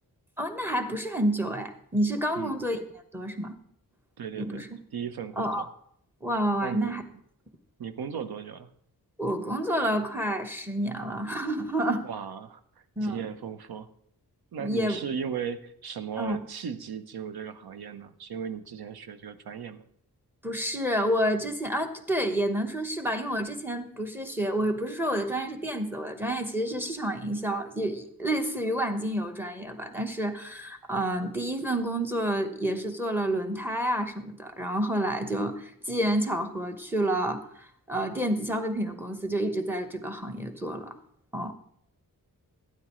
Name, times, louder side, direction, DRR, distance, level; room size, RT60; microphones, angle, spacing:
voice 1, 0.4-2.8 3.1-3.5 4.4-4.7 5.4-5.7 6.2-7.0 9.2-12.0 13.0-13.2 14.6-15.0 16.2-16.4 20.4-41.0 41.3-41.5, right 1 dB, 5° right, 7 dB, 1.0 m, -29 dB
voice 2, 4.2-4.6 4.9-5.7 6.6-6.9 7.8-8.7 12.0-12.6 13.0-13.9 14.5-19.8, right 7 dB, 80° right, 11 dB, 0.8 m, -36 dB
12.5 x 9.4 x 3.1 m, 0.66 s
wide cardioid pair, 100°, 37 cm